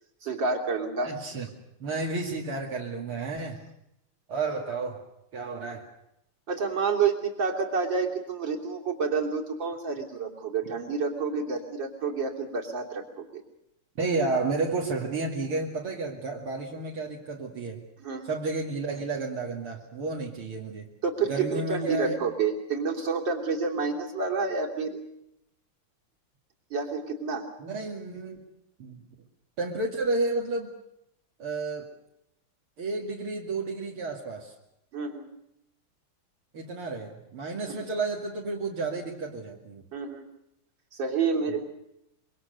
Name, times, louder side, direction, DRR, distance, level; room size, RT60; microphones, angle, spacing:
voice 1, 0.2-1.1 6.5-13.4 18.0-18.3 21.0-25.0 26.7-27.5 34.9-35.3 37.7-37.9 39.9-40.3 40.9-41.6, right 5 dB, 55° right, 1 dB, 4.0 m, -29 dB
voice 2, 1.0-1.5 1.8-3.6 4.3-5.0 5.3-5.9 14.0-17.8 18.2-20.9 21.3-22.2 27.6-28.5 28.8-29.0 29.6-30.7 31.4-31.9 32.8-34.5 36.5-39.8, right 3 dB, 75° right, -1 dB, 3.3 m, -31 dB
26.5 x 23.5 x 6.8 m, 0.80 s
omnidirectional pair, 2.4 m